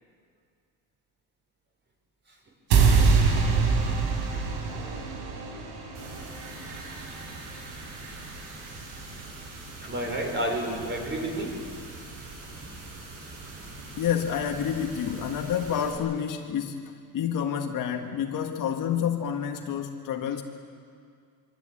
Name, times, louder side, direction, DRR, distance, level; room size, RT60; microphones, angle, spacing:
sound 1, 2.7-8.9, right 5 dB, 80° right, 4.8 m, -25 dB
sound 2, 5.9-15.9, right 2 dB, 50° right, 6.9 m, -43 dB
voice 1, 9.8-11.6, right 1 dB, 25° right, 1 dB, 5.5 m, -31 dB
voice 2, 14.0-20.4, left 8 dB, 45° left, 4 dB, 1.7 m, -29 dB
25.0 x 25.0 x 8.7 m, 2.2 s
cardioid pair, 165°, 44 cm